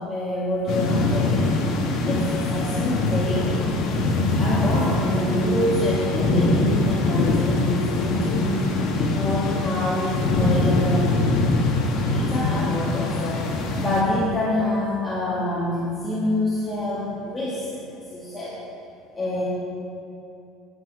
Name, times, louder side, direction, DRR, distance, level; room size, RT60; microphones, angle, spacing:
voice 1, 0.0-3.4 4.3-8.7 9.1-11.1 12.1-13.5 13.8-17.7 18.0-18.5 19.1-19.4, left 1 dB, 15° left, -8 dB, 1.9 m, -26 dB
sound 1, 0.7-14.0, left 2 dB, 55° left, 1.5 m, -23 dB
9.3 x 8.6 x 4.8 m, 2.7 s
supercardioid pair, 100°, 0 cm